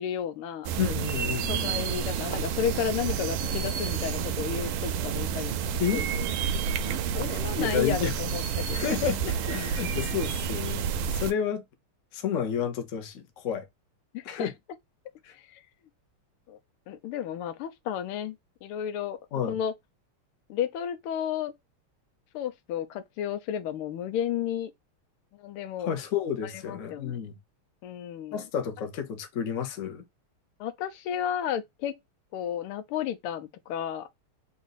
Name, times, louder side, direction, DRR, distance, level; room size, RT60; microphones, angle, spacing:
voice 1, 0.0-0.7 1.5-6.1 7.1-8.9 9.5-10.0 14.1-14.5 15.3-15.6 16.5-16.6 16.9-18.3 18.6-19.2 19.5-19.7 20.5-21.5 22.3-24.7 25.4-25.9 26.4-27.2 27.8-28.4 30.6-31.9 32.3-34.1, left 9 dB, 90° left, 1.5 m, -32 dB
sound 1, 0.6-11.3, right 7 dB, 75° right, 1.3 m, -30 dB
voice 2, 0.8-1.9 5.8-6.1 7.6-8.1 8.7-11.6 12.1-13.7 14.2-14.5 15.2-15.3 19.3-19.6 25.8-27.4 28.3-30.0, left 8 dB, 60° left, 0.8 m, -31 dB
4.0 x 2.5 x 3.8 m
omnidirectional pair, 2.4 m